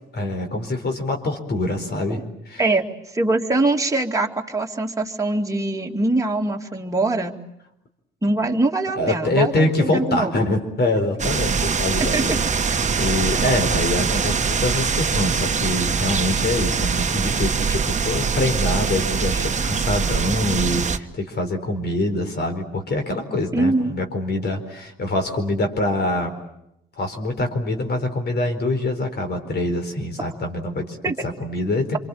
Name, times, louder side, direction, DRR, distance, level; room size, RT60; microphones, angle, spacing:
voice 1, 0.1-2.2 2.5-2.6 9.0-26.4 27.0-32.0, left 1 dB, 55° left, 5 dB, 4.6 m, -24 dB
voice 2, 3.1-7.4 8.2-10.5 12.1-12.4 23.5-23.9 31.0-31.1, right 2 dB, 15° right, 1 dB, 2.6 m, -23 dB
sound 1, 11.2-21.0, right 5 dB, 35° right, 1.3 m, -23 dB
27.5 x 24.0 x 8.6 m, 0.81 s
supercardioid pair, 70°, 21 cm